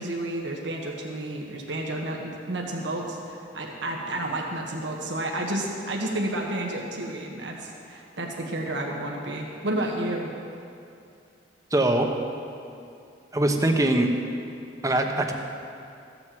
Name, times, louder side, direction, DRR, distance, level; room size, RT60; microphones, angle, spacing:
voice 1, 0.0-10.3, right 1 dB, 75° right, 0 dB, 1.5 m, -31 dB
voice 2, 11.7-12.1 13.3-14.1 14.8-15.3, right 1 dB, 20° right, 3 dB, 1.0 m, -22 dB
15.0 x 7.8 x 7.6 m, 2.5 s
head